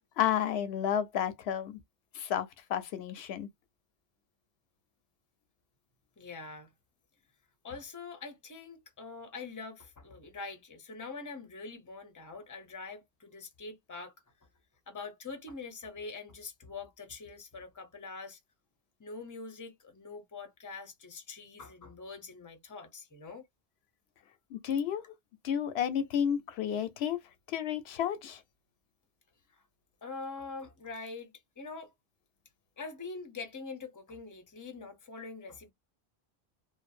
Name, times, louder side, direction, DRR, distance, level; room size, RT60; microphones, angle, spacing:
voice 1, 0.2-1.8 2.1-3.5 24.5-25.0 25.4-27.2 27.5-28.4, left 9 dB, 90° left, 0.8 m, -31 dB
voice 2, 6.2-6.7 7.6-14.1 14.9-18.4 19.0-23.4 29.5-29.6 30.0-31.9 32.8-35.7, left 4 dB, 20° left, 0.6 m, -44 dB
2.6 x 2.1 x 2.4 m
omnidirectional pair, 1.0 m